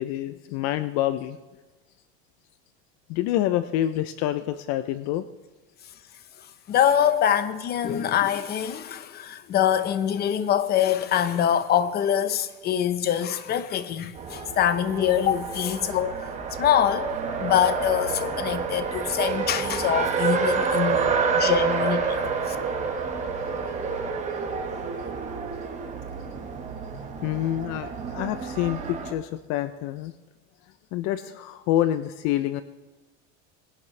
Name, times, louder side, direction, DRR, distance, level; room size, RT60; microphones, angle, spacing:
voice 1, 0.0-1.4 3.1-5.2 21.0-21.1 27.2-30.1 30.9-32.6, left 13 dB, 60° left, 0.5 m, -27 dB
voice 2, 6.7-16.1 16.6-17.1 17.4-22.2 22.5-22.6, left 10 dB, 35° left, 0.8 m, -24 dB
Race car auto racing, 14.1-29.1, right 5 dB, 25° right, 1.2 m, -28 dB
20.5 x 11.0 x 3.3 m
cardioid pair, 145°, 30 cm